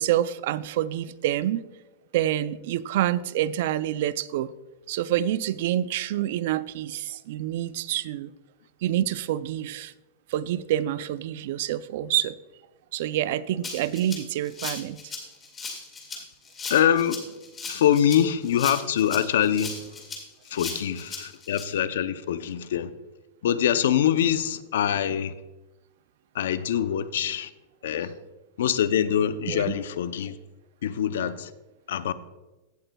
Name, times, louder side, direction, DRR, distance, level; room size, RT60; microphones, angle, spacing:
voice 1, 0.0-1.6 2.1-4.5 4.9-8.3 8.8-9.9 10.3-12.4 12.9-15.0 29.5-29.7, right 12 dB, 60° right, 0.4 m, -27 dB
Rattle (instrument), 13.6-21.6, left 4 dB, 20° left, 1.9 m, -37 dB
voice 2, 16.7-17.3 17.7-19.9 20.5-22.9 23.4-25.3 26.3-27.5 27.8-28.1 28.6-30.4 30.8-31.5 31.9-32.1, left 9 dB, 80° left, 0.5 m, -24 dB
15.5 x 7.7 x 2.3 m
supercardioid pair, 150°, 0 cm